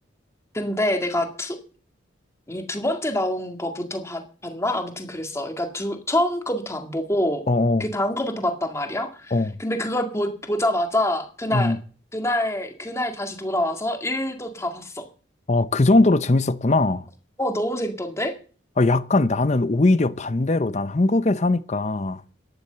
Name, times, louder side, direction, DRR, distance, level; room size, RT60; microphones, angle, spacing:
voice 1, 0.5-1.6 2.5-7.4 7.8-9.3 9.6-11.7 12.1-15.0 17.4-18.3, left 1 dB, 15° left, 2.0 m, -26 dB
voice 2, 7.5-7.8 9.3-9.6 11.5-11.8 15.5-17.1 18.8-22.2, left 2 dB, 35° left, 0.6 m, -20 dB
12.0 x 10.5 x 6.8 m
head